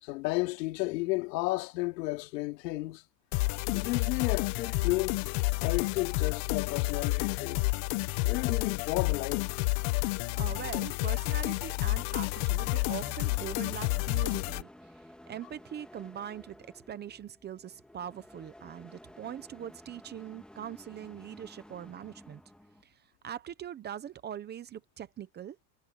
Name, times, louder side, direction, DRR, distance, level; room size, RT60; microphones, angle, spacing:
voice 1, 0.0-3.0 3.7-5.2 5.6-7.6 8.2-9.5, left 21 dB, 90° left, 2.7 m, -32 dB
sound 1, 3.3-14.6, left 22 dB, 55° left, 0.9 m, -30 dB
voice 2, 10.4-14.9 15.3-22.4 22.8-25.6, right 9 dB, 20° right, 0.8 m, -42 dB
sound 2, 11.7-22.8, left 1 dB, ahead, 2.1 m, -54 dB
cardioid pair, 160°, 49 cm